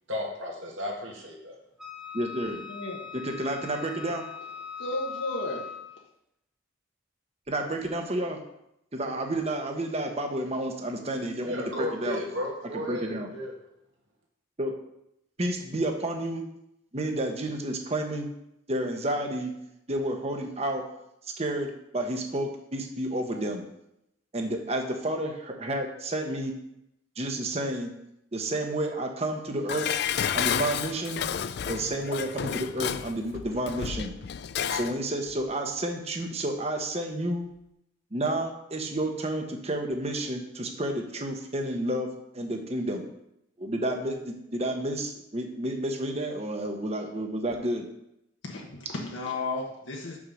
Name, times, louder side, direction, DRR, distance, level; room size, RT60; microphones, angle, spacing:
voice 1, 0.1-1.6 11.5-13.6, left 1 dB, 75° right, -1 dB, 2.2 m, -34 dB
Wind instrument woodwind instrument, 1.8-6.0, left 8 dB, 5° right, 0.8 m, -40 dB
voice 2, 2.1-2.6 3.1-4.2 7.5-8.4 8.9-12.2 12.7-13.3 14.6-14.7 15.4-16.4 16.9-18.3 18.7-19.5 19.9-20.8 21.4-23.6 24.3-26.5 27.2-27.9 28.3-30.0 30.3-31.2 31.7-34.1 34.7-37.4 38.1-42.1 42.3-43.0 43.6-47.9, right 1 dB, 30° right, 4 dB, 1.1 m, -30 dB
voice 3, 2.7-3.0 4.8-5.7 48.4-50.2, left 2 dB, 70° left, -1 dB, 1.2 m, -33 dB
Dishes pots and pans, 29.7-35.0 35.3-35.4, left 8 dB, 55° left, 0.3 m, -31 dB
6.1 x 5.7 x 6.3 m, 0.81 s
head